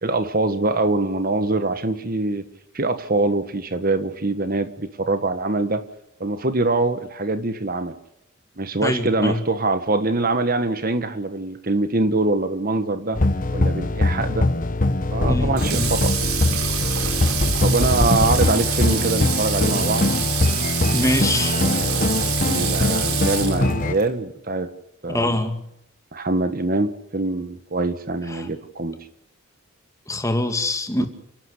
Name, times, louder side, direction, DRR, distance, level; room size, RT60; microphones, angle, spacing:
voice 1, 0.0-2.5 2.7-5.8 6.2-7.9 8.6-13.2 13.5-14.5 15.1-16.3 17.6-20.1 21.1-24.7 25.0-25.4 26.1-29.0 31.0-31.1, right 2 dB, 40° right, 1.4 m, -24 dB
voice 2, 8.8-9.4 15.3-15.9 20.9-21.6 25.1-25.7 28.3-28.5 30.1-31.1, left 1 dB, 15° left, 2.2 m, -24 dB
sound 1, 13.2-23.9, left 2 dB, 40° left, 0.9 m, -22 dB
Water / Water tap faucet, 15.6-24.1, right 8 dB, 85° right, 4.0 m, -27 dB
29.0 x 12.0 x 8.4 m
head